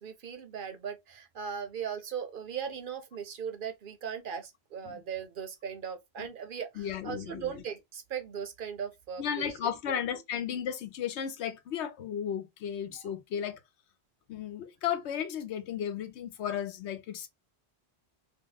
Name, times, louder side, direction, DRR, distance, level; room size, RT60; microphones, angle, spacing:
voice 1, 0.0-9.8 12.9-13.1, right 7 dB, 60° right, 0.7 m, -38 dB
voice 2, 6.8-7.5 9.2-13.6 14.3-17.3, left 9 dB, 90° left, 0.9 m, -34 dB
2.8 x 2.0 x 3.9 m
omnidirectional pair, 1.1 m